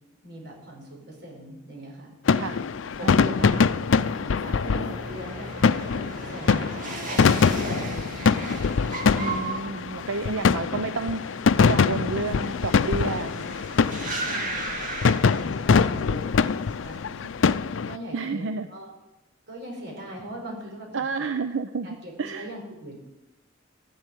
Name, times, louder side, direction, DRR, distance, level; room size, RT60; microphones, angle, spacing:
voice 1, 0.2-2.1 3.0-3.4 3.9-4.1 4.4-5.5 6.3-8.5 14.3-14.9 15.3-16.2 16.8-17.3 17.9-18.9 19.5-21.3 21.8-23.0, equal, 60° right, -1 dB, 5.3 m, -41 dB
sound 1, 2.3-18.0, left 5 dB, 85° left, 0.5 m, -23 dB
sound 2, 2.9-16.0 16.3-16.9, right 3 dB, 45° right, 2.1 m, -37 dB
voice 2, 3.0-3.7 6.5-6.7 9.2-11.4 11.7-13.6 15.8-16.0 18.1-18.7 20.9-22.5, right 4 dB, 90° right, 10 dB, 0.6 m, -31 dB
13.0 x 7.9 x 9.1 m, 0.99 s
head